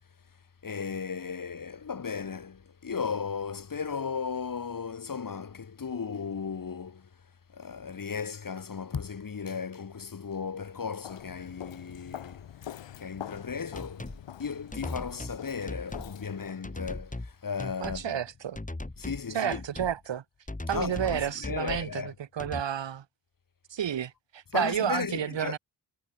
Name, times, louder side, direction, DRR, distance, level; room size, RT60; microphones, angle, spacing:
voice 1, 0.6-7.1 7.5-12.5 13.0-14.1 14.4-18.2 19.0-19.6 20.7-22.1 24.5-25.6, left 6 dB, 50° left, 2.4 m, -35 dB
Walk footsteps, 11.0-16.6, left 11 dB, 85° left, 2.2 m, -44 dB
sound 1, 13.7-14.2 14.7-15.4 15.7-16.1 16.6-17.3 17.6-18.1 18.5-19.2 19.5-19.9 20.5-21.9 22.4-22.6, left 2 dB, 20° left, 4.1 m, -38 dB
voice 2, 17.8-18.6 19.3-20.2 20.7-23.0 23.7-25.6, right 9 dB, 80° right, 4.4 m, -31 dB
cardioid pair, 55°, 43 cm